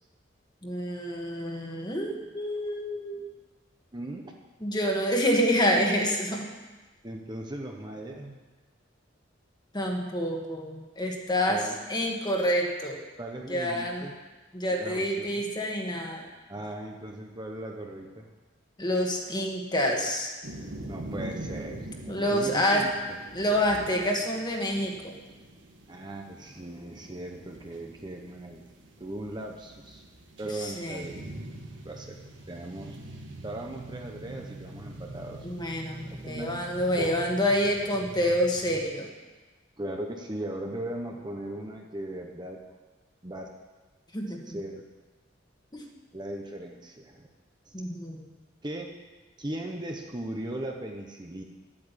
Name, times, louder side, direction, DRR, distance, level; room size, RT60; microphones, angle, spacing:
voice 1, 0.6-3.2 4.6-6.5 9.7-11.6 11.9-13.0 13.5-14.1 14.5-16.3 18.8-20.3 22.1-22.9 23.3-25.2 30.6-31.1 35.4-39.1 44.1-44.6 45.7-45.8 47.7-48.2, equal, 25° left, 1 dB, 1.8 m, -27 dB
voice 2, 3.9-4.3 5.0-5.1 7.0-8.4 11.5-11.8 13.2-14.1 14.7-15.4 16.5-18.3 20.9-21.9 22.3-22.9 25.9-28.6 29.0-30.0 30.4-31.2 31.8-32.2 32.5-33.0 33.4-35.5 36.3-36.5 37.0-37.1 39.8-42.6 43.2-43.5 44.5-44.8 46.1-47.3 47.7-47.8 48.6-48.9 49.4-51.4, right 1 dB, 25° right, 1 dB, 1.1 m, -38 dB
sound 1, 20.4-38.8, right 1 dB, 80° right, 1.8 m, -44 dB
11.0 x 8.9 x 8.4 m, 1.2 s
head